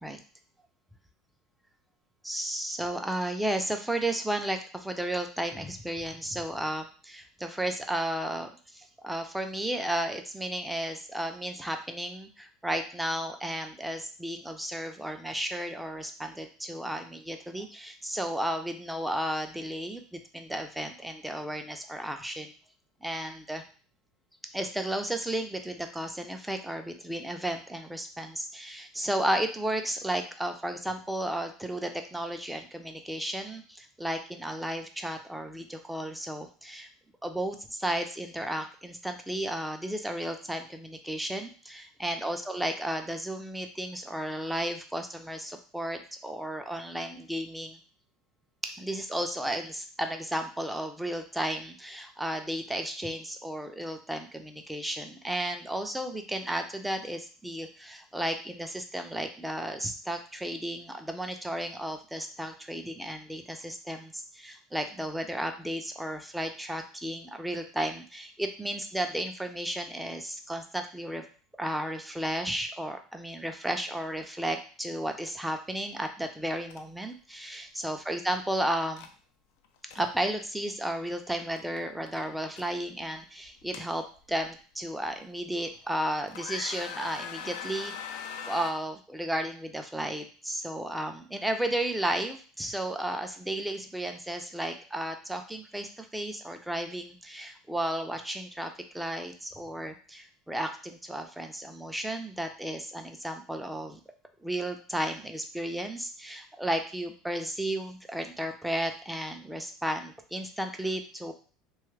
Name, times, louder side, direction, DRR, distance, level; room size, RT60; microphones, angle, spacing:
voice 1, 2.2-22.5 23.0-23.6 24.5-36.9 37.2-47.8 48.6-71.2 71.6-79.1 79.9-104.0 104.4-111.3, right 1 dB, 5° right, 5 dB, 0.5 m, -33 dB
sound 1, 76.7-76.8 77.1-77.3 79.0-79.1 79.6-80.0 81.6-81.8 82.1-82.6 83.4-84.4 85.0-85.1 85.7-86.0 86.3-88.7, left 7 dB, 70° left, 0.4 m, -40 dB
2.9 x 2.3 x 3.2 m, 0.39 s
hypercardioid pair, 75°, 0 cm